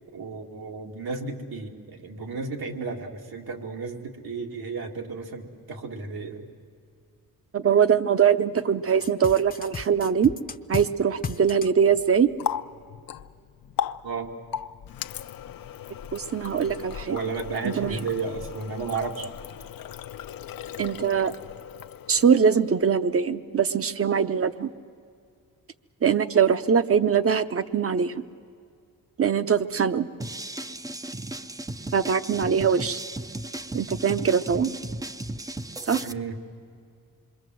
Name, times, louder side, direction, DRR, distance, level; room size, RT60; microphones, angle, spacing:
voice 1, 0.1-6.4 14.0-14.3 17.1-19.3 36.0-36.4, right 4 dB, 75° right, 2 dB, 2.5 m, -33 dB
voice 2, 7.5-10.3 10.7-12.3 16.1-18.0 20.8-21.3 22.1-24.7 26.0-28.2 29.2-30.1 31.9-33.0 33.7-34.8 35.9-36.0, right 7 dB, 40° right, 12 dB, 0.8 m, -22 dB
sound 1, 9.0-10.9 11.2-11.7, left 5 dB, 25° left, 0.7 m, -33 dB
Water tap faucet, 11.9-22.7, left 9 dB, 70° left, 0.7 m, -37 dB
sound 2, 30.2-36.1, right 1 dB, 10° right, 0.5 m, -35 dB
26.5 x 22.5 x 7.7 m, 2.3 s
cardioid pair, 110°, 37 cm